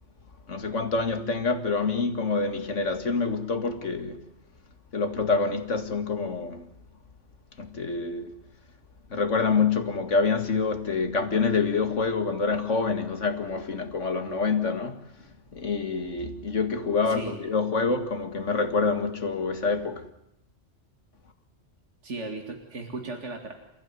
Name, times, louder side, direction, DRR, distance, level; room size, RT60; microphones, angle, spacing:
voice 1, 0.5-4.2 4.9-6.7 7.6-8.3 9.1-15.0 15.5-20.1, left 4 dB, 85° left, 2.3 m, -26 dB
voice 2, 17.1-17.4 22.0-23.7, right 3 dB, 75° right, 2.6 m, -36 dB
29.5 x 15.5 x 9.6 m
omnidirectional pair, 1.2 m